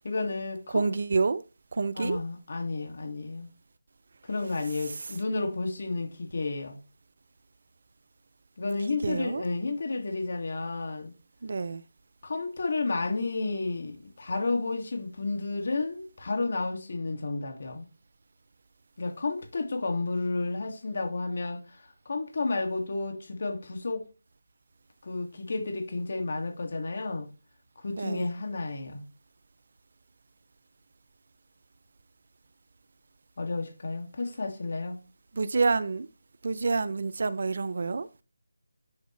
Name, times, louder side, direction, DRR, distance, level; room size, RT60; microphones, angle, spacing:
voice 1, 0.0-0.9 2.0-3.5 4.3-6.8 8.6-11.1 12.2-17.9 19.0-24.1 25.0-27.3 27.8-29.0 33.4-35.0, left 3 dB, 55° left, 2.1 m, -31 dB
voice 2, 0.7-1.4 1.7-2.2 4.9-5.1 9.0-9.4 11.4-11.8 27.9-28.3 35.3-36.1 36.4-38.1, right 4 dB, 50° right, 0.5 m, -28 dB
9.5 x 4.7 x 3.2 m
figure-of-eight pair, 165°, 0 cm